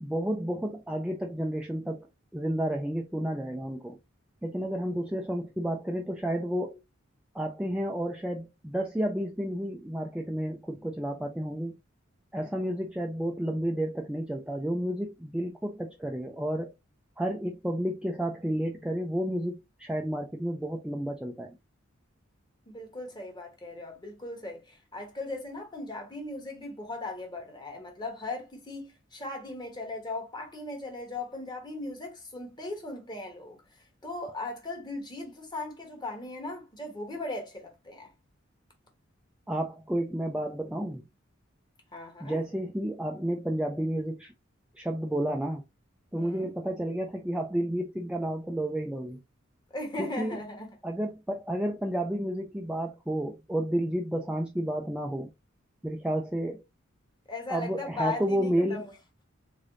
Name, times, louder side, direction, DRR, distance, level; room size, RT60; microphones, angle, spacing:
voice 1, 0.0-2.1 2.3-4.0 4.4-6.8 7.3-11.8 12.3-16.7 17.2-21.6 39.5-41.0 42.2-44.3 44.8-45.6 46.1-49.2 50.0-50.4 50.8-55.3 55.8-56.6 57.5-58.8, right 1 dB, 5° right, 0.3 m, -31 dB
voice 2, 22.7-38.1 41.9-42.4 46.1-46.5 49.7-50.8 57.3-58.9, left 2 dB, 20° left, 1.1 m, -38 dB
3.7 x 3.3 x 2.6 m
head